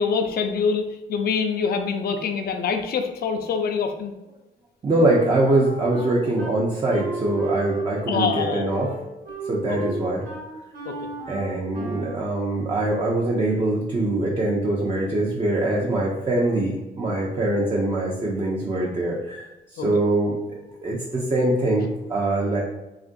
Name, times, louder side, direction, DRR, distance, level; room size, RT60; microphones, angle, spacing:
voice 1, 0.0-4.1 8.1-8.8 9.7-9.8 10.9-11.0 19.8-19.9, left 5 dB, 50° left, 5 dB, 0.4 m, -25 dB
voice 2, 4.8-8.9 9.5-10.3 11.3-19.4 19.7-22.6, right 2 dB, 25° right, -3 dB, 0.5 m, -23 dB
Wind instrument woodwind instrument, 4.9-6.5 6.9-12.2, right 3 dB, 80° right, 1.1 m, -35 dB
2.9 x 2.4 x 2.5 m, 1.0 s
cardioid pair, 90°, 20 cm